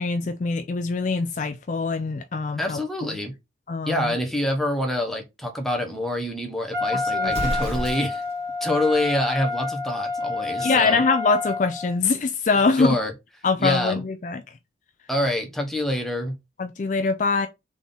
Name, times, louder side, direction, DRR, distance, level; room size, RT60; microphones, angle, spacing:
voice 1, 0.0-2.8 3.7-4.1 7.1-7.6 10.6-13.0 13.4-14.4 16.6-17.5, left 4 dB, 40° left, 0.4 m, -23 dB
voice 2, 2.6-3.3 3.9-8.2 8.6-11.0 12.7-13.1 13.6-14.0 15.1-16.4, left 1 dB, ahead, 0.9 m, -26 dB
Wind instrument woodwind instrument, 6.7-12.0, left 3 dB, 55° right, 1.7 m, -28 dB
Explosion, 7.2-8.4, equal, 35° right, 1.6 m, -30 dB
3.7 x 3.5 x 3.8 m
head